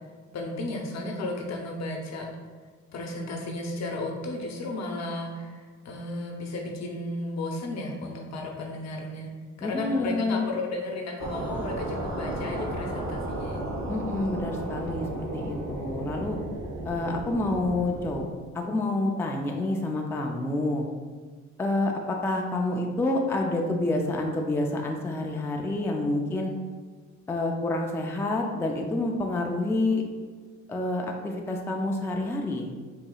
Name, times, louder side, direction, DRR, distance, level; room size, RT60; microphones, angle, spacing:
voice 1, 0.3-2.3 2.9-9.3 9.6-13.6, left 2 dB, 60° left, 1 dB, 0.8 m, -34 dB
voice 2, 9.6-10.4 13.9-16.4 16.8-18.3 18.5-20.9 21.6-26.5 27.3-30.0 30.7-32.7, left 2 dB, 10° left, 1 dB, 0.3 m, -28 dB
sound 1, 11.2-18.2, right 1 dB, 65° right, 0.9 m, -34 dB
4.7 x 2.8 x 2.3 m, 1.5 s
cardioid pair, 90°, 30 cm